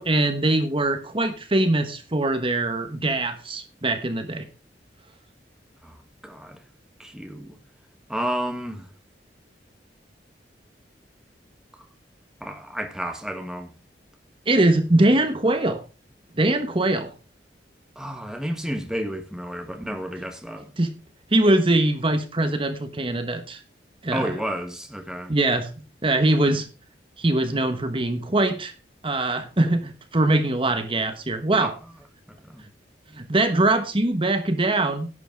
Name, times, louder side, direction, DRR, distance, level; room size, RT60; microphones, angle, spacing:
voice 1, 0.0-4.4 14.5-15.8 16.4-17.1 20.8-20.9 21.3-23.6 24.0-24.4 25.3-25.7 26.0-26.7 27.2-28.7 29.0-31.7 33.1-35.1, right 2 dB, 30° right, 1.2 m, -22 dB
voice 2, 6.2-6.6 7.0-7.6 8.1-8.9 12.4-13.7 18.0-20.7 24.1-25.3 31.6-31.7 32.3-32.6, equal, 5° right, 1.4 m, -31 dB
11.0 x 8.1 x 4.6 m
head